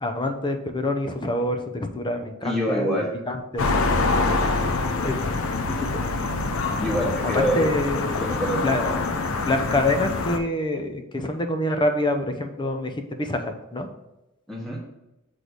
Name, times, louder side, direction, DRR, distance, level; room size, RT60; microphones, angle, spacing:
voice 1, 0.0-3.7 4.1-4.7 5.0-5.2 5.7-6.0 7.3-8.3 8.6-9.0 9.5-13.9, left 1 dB, 20° left, 5 dB, 0.6 m, -26 dB
voice 2, 2.4-3.1 6.8-7.7 8.2-8.7 14.5-14.8, equal, ahead, -4 dB, 1.2 m, -25 dB
sound 1, 3.6-10.4, left 3 dB, 70° left, 0.6 m, -25 dB
7.9 x 3.2 x 4.0 m, 0.98 s
head